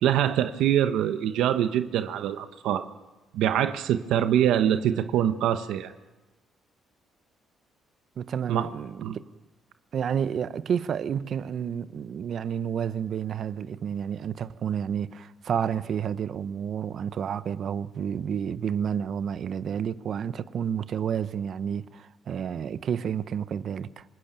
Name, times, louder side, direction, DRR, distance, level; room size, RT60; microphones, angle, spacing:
voice 1, 0.0-2.8 3.3-5.9 8.5-8.7 9.0-9.2, right 10 dB, 85° right, 1.1 m, -24 dB
voice 2, 8.2-9.2 9.9-24.0, right 8 dB, 60° right, 1.0 m, -30 dB
27.0 x 18.0 x 9.1 m
cardioid pair, 90°, 0 cm